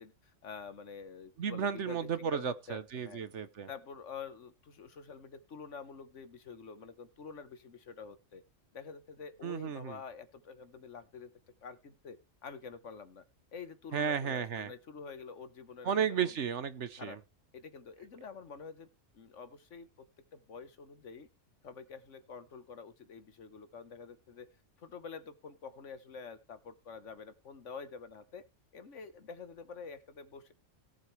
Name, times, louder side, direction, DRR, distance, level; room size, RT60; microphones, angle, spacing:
voice 1, 0.0-2.0 2.3-3.2 3.7-8.4 8.7-11.3 11.6-13.2 13.5-16.4 17.0-17.2 17.5-18.9 19.1-20.1 20.3-21.3 21.6-24.5 24.8-28.4 28.7-30.5, left 5 dB, 65° left, 1.5 m, -47 dB
voice 2, 1.4-3.7 9.4-10.0 13.9-14.7 15.8-17.1, right 7 dB, 65° right, 1.2 m, -33 dB
18.0 x 7.9 x 3.2 m
omnidirectional pair, 1.4 m